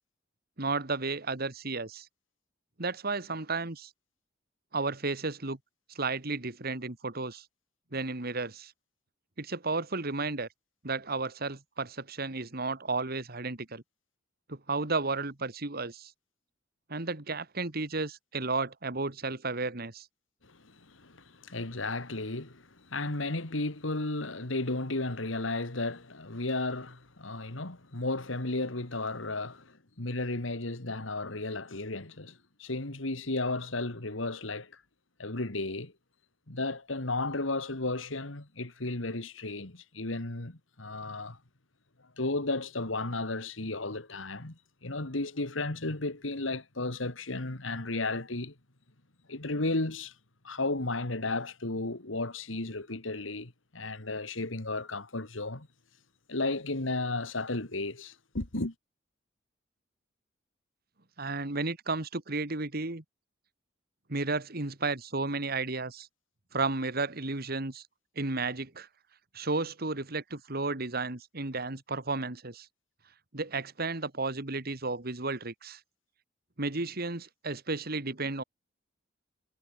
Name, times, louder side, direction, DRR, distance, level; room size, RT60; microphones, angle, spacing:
voice 1, 0.6-2.1 2.8-3.9 4.7-5.6 6.0-7.4 7.9-8.7 9.4-10.5 10.8-13.8 14.5-16.1 16.9-20.1 61.2-63.0 64.1-66.1 66.5-67.8 68.2-68.9 69.3-72.7 73.3-75.8 76.6-78.4, right 3 dB, 50° right, 2.1 m, -33 dB
voice 2, 20.4-34.7 35.2-35.9 36.5-41.4 42.2-48.5 49.3-50.1 50.4-55.7 56.3-58.7, left 2 dB, 85° left, 2.5 m, -34 dB
head